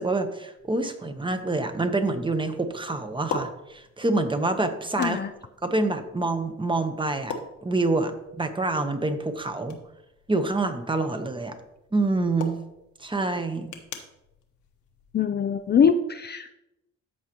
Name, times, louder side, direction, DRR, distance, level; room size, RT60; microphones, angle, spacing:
voice 1, 0.0-5.2 5.6-7.3 7.6-8.1 8.4-9.8 10.3-11.5 11.9-12.6 13.0-13.7, right 2 dB, 15° right, 7 dB, 1.0 m, -26 dB
sound 1, 0.6-15.8, left 5 dB, 75° left, 1.3 m, -43 dB
voice 2, 5.0-5.3 15.1-16.5, left 6 dB, 35° left, 9 dB, 0.4 m, -23 dB
14.0 x 4.9 x 3.0 m, 0.88 s
cardioid pair, 90°, 30 cm